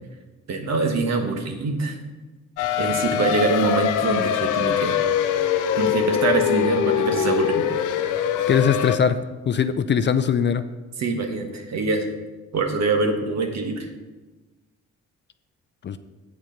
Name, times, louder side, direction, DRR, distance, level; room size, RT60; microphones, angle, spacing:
voice 1, 0.5-2.0 2.8-5.0 5.8-7.7 11.0-12.1 12.5-13.9, right 3 dB, 60° right, 5 dB, 1.4 m, -24 dB
sound 1, 2.6-9.0, left 8 dB, 80° left, 0.7 m, -23 dB
voice 2, 8.5-9.2 9.5-10.6 15.8-16.0, left 7 dB, 40° left, 12 dB, 0.5 m, -20 dB
8.3 x 6.3 x 5.2 m, 1.2 s
cardioid pair, 90°, 30 cm